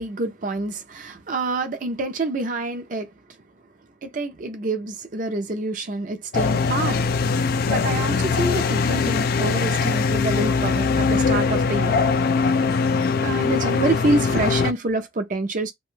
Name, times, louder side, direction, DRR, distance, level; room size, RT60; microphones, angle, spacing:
voice 1, 0.0-3.1 4.0-7.1 7.7-11.9 12.9-15.7, right 2 dB, 45° right, 0.6 m, -27 dB
sound 1, 6.3-14.7, left 4 dB, 55° left, 0.3 m, -21 dB
2.8 x 2.3 x 3.1 m
head